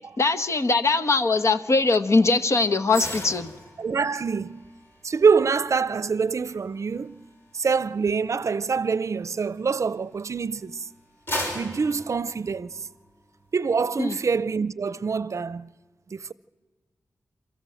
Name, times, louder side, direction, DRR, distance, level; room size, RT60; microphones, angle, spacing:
voice 1, 0.2-3.5 14.0-14.2, left 3 dB, 55° left, 1.1 m, -21 dB
sound 1, 2.9-10.3 10.7-13.1 13.5-13.7, equal, 40° left, 6.3 m, -38 dB
voice 2, 3.8-4.6 5.0-7.2 7.5-10.9 11.5-12.8 13.5-15.7 16.1-16.3, right 5 dB, 60° right, 0.5 m, -25 dB
28.5 x 14.5 x 7.7 m
wide cardioid pair, 105°, 6 cm